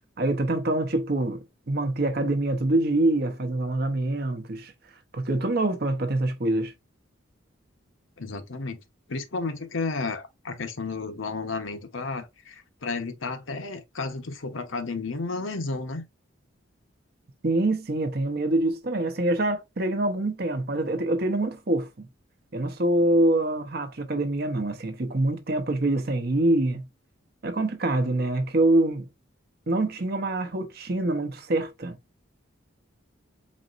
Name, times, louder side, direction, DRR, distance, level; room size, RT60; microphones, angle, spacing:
voice 1, 0.2-4.7 5.1-6.7 17.4-22.1 22.5-26.9 27.4-29.1 29.7-32.0, right 2 dB, 50° right, 0.7 m, -25 dB
voice 2, 8.2-8.8 9.1-16.0, left 3 dB, 80° left, 0.9 m, -32 dB
4.2 x 4.0 x 2.5 m
head